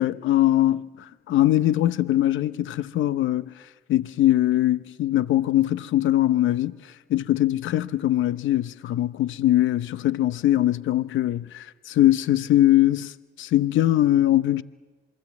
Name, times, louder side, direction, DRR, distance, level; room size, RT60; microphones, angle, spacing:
voice 1, 0.0-3.5 3.9-6.8 7.1-14.6, left 13 dB, 75° left, 0.8 m, -21 dB
27.0 x 23.0 x 8.4 m
cardioid pair, 90°, 20 cm